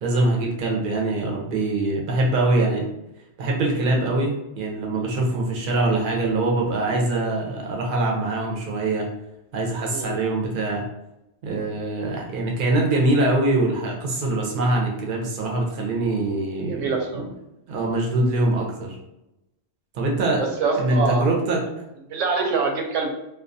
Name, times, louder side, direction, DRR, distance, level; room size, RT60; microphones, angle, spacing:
voice 1, 0.0-2.8 3.4-9.1 9.5-10.8 11.4-17.2 17.7-19.0 19.9-20.5 20.8-21.6, right 2 dB, 55° right, -1 dB, 0.6 m, -23 dB
voice 2, 16.6-17.2 18.1-18.3 20.4-21.3 22.1-23.1, right 4 dB, 90° right, 2 dB, 0.9 m, -25 dB
2.3 x 2.3 x 2.5 m, 0.89 s
omnidirectional pair, 1.2 m